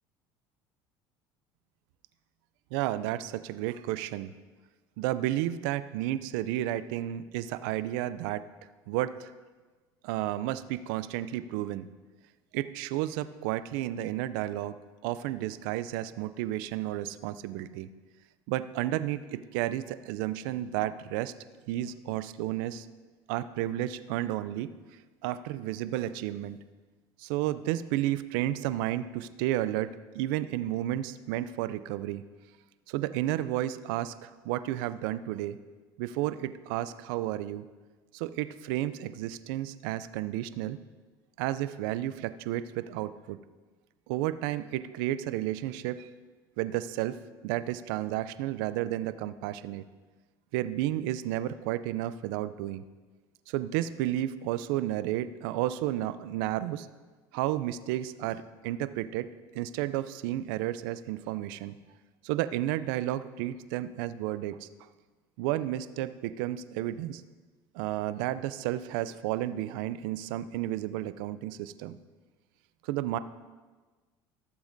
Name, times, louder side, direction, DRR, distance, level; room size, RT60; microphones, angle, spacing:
voice 1, 2.7-4.3 5.0-8.4 8.9-9.3 10.0-11.9 12.5-14.7 15.0-17.9 18.5-21.3 21.7-22.9 23.3-24.7 25.2-26.6 27.2-32.2 32.9-35.6 36.0-37.7 38.1-40.8 41.4-43.4 44.1-46.1 46.6-47.2 47.4-49.8 50.5-52.8 53.5-56.9 57.3-59.3 59.5-61.8 62.2-64.7 65.4-67.2 67.7-72.0 72.8-73.2, right 14 dB, 80° right, 14 dB, 0.4 m, -32 dB
15.0 x 7.2 x 2.6 m, 1.3 s
supercardioid pair, 85°, 11 cm